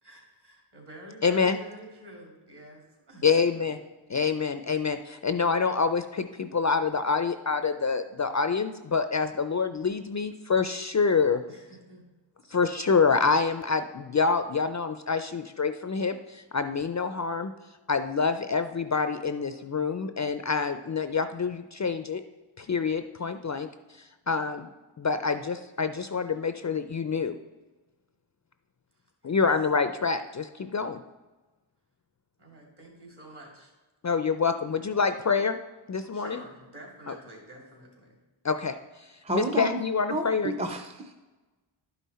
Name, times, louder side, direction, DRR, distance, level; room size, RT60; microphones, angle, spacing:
voice 1, 0.0-3.7 11.5-12.1 29.2-29.4 32.4-33.7 36.0-38.2, right 1 dB, 55° right, -1 dB, 2.9 m, -48 dB
voice 2, 1.2-1.6 3.2-3.8 4.1-11.4 12.5-17.5 17.9-22.2 22.6-24.7 25.0-27.4 29.2-31.0 34.0-35.6 35.9-36.4 37.1-37.2 38.4-40.5, left 5 dB, 40° left, 9 dB, 0.4 m, -27 dB
voice 3, 39.2-39.8 40.1-41.1, right 2 dB, 15° right, 6 dB, 0.5 m, -30 dB
11.0 x 5.6 x 4.2 m, 1.2 s
wide cardioid pair, 70°, 49 cm